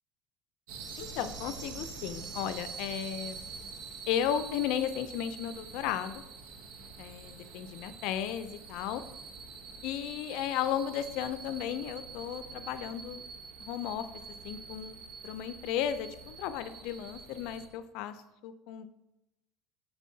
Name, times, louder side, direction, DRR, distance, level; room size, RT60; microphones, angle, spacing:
sound 1, 0.7-17.7, right 4 dB, 75° right, 0.9 m, -45 dB
voice 1, 1.0-3.4 4.1-6.2 7.0-9.0 9.8-13.2 13.6-14.1 14.4-15.0 15.2-18.9, left 10 dB, 65° left, 12 dB, 0.4 m, -34 dB
6.4 x 6.0 x 2.7 m, 0.93 s
cardioid pair, 150°, 0 cm